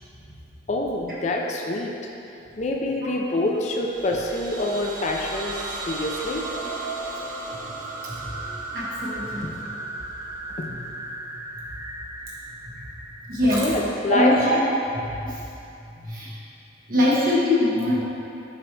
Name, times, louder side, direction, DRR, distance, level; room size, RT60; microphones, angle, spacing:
voice 1, 0.7-1.9 2.6-6.4 9.4-9.5 10.6-10.7 13.6-14.3, left 2 dB, 40° left, 0 dB, 0.5 m, -26 dB
sound 1, 3.7-14.4, right 2 dB, 25° right, 0.9 m, -35 dB
voice 2, 8.7-9.5 10.7-10.8 12.7-12.8 13.2-13.7 14.1-14.6 14.9-15.4 15.8-16.3 16.9-17.9, left 1 dB, 50° right, -7 dB, 1.5 m, -23 dB
7.3 x 5.1 x 3.2 m, 2.8 s
head